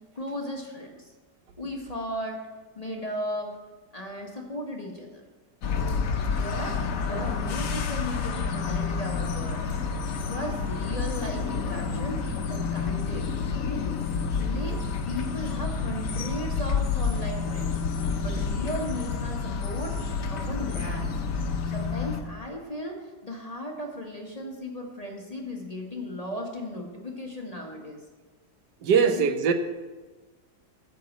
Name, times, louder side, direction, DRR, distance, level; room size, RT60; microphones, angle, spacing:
voice 1, 0.1-1.1 1.6-2.4 2.7-3.6 3.9-5.2 6.3-9.7 10.1-13.3 14.4-17.8 18.2-20.0 20.3-21.1 21.6-28.0 29.0-29.3, left 1 dB, 25° left, 0 dB, 1.4 m, -36 dB
sound 1, 5.6-22.2, left 5 dB, 60° left, 1.3 m, -29 dB
voice 2, 28.8-29.5, right 6 dB, 80° right, 8 dB, 1.5 m, -21 dB
13.0 x 5.2 x 7.2 m, 1.3 s
omnidirectional pair, 1.8 m